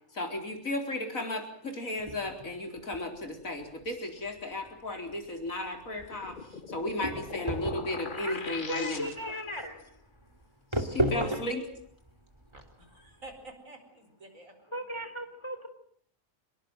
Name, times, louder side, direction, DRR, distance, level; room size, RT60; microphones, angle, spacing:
voice 1, 0.1-6.4 6.7-9.1 10.7-11.6, left 1 dB, 80° left, 4 dB, 4.6 m, -34 dB
sound 1, 2.0-13.4, equal, 20° right, 2.6 m, -36 dB
sound 2, 5.9-9.5, left 4 dB, 40° left, 1.4 m, -42 dB
voice 2, 8.2-9.8 14.7-15.7, equal, 20° left, 8 dB, 3.4 m, -37 dB
voice 3, 11.1-11.5 12.5-14.8, right 1 dB, 75° right, 7 dB, 4.9 m, -47 dB
25.5 x 21.5 x 7.8 m, 0.62 s
omnidirectional pair, 1.4 m